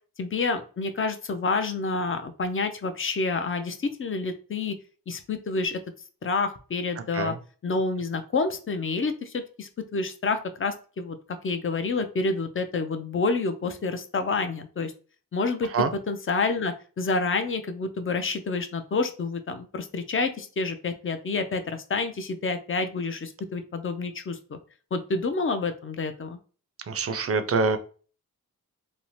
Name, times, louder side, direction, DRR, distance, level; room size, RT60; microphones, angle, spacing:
voice 1, 0.2-4.8 5.1-5.8 6.2-7.3 7.6-11.2 11.4-14.9 15.3-24.6 24.9-26.4, left 3 dB, 35° left, 8 dB, 0.4 m, -28 dB
voice 2, 26.9-27.8, right 4 dB, 40° right, 9 dB, 0.4 m, -25 dB
2.7 x 2.0 x 3.0 m, 0.38 s
wide cardioid pair, 70°, 36 cm